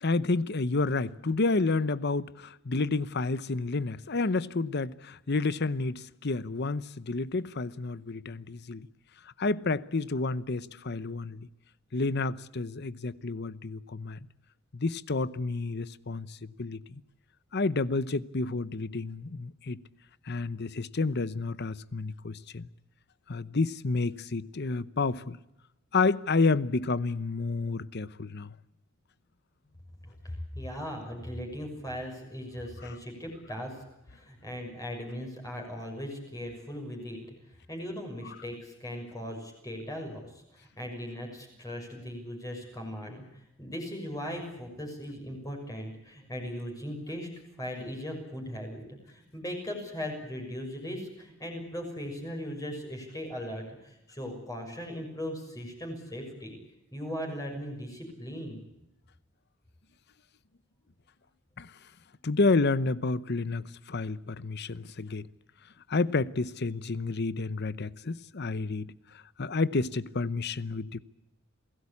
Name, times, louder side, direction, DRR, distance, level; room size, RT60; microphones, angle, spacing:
voice 1, 0.0-8.9 9.4-11.5 11.9-14.3 14.7-17.0 17.5-19.8 20.2-22.7 23.3-25.4 25.9-28.5 32.8-33.0 61.6-61.7 62.2-65.3 65.9-71.0, left 3 dB, 55° left, 0.9 m, -30 dB
voice 2, 30.1-33.8 34.1-37.2 37.7-47.3 47.6-56.5 56.9-58.6, equal, 15° left, 6.4 m, -38 dB
28.0 x 18.0 x 8.5 m
head